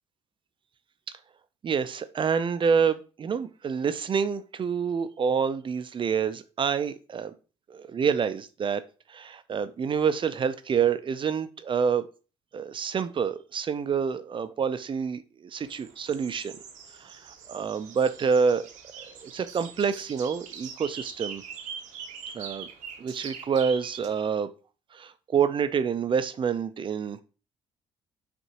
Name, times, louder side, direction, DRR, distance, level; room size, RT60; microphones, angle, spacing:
voice 1, 1.6-7.3 7.7-8.8 9.1-12.0 12.5-16.5 17.0-18.7 19.0-21.4 22.3-22.7 23.0-24.5 24.9-27.2, right 6 dB, 40° right, 12 dB, 0.5 m, -27 dB
sound 1, 15.6-24.3, right 7 dB, 75° right, 0.8 m, -43 dB
5.5 x 2.6 x 2.9 m, 0.35 s
supercardioid pair, 65°, 13 cm